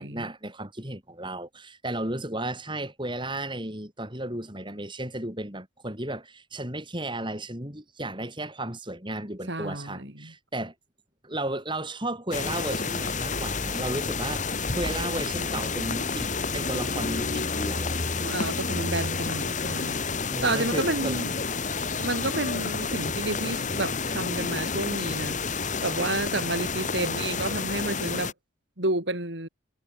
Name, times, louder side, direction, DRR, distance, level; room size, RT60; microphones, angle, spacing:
voice 1, 0.0-10.7 11.2-18.0 20.3-21.2, right 1 dB, 25° right, 8.0 m, -34 dB
voice 2, 9.5-10.3 18.2-21.3 22.0-25.4 25.8-28.3 28.8-29.5, right 2 dB, 55° right, 4.4 m, -30 dB
sound 1, 12.3-28.3, left 4 dB, 35° left, 1.9 m, -30 dB
head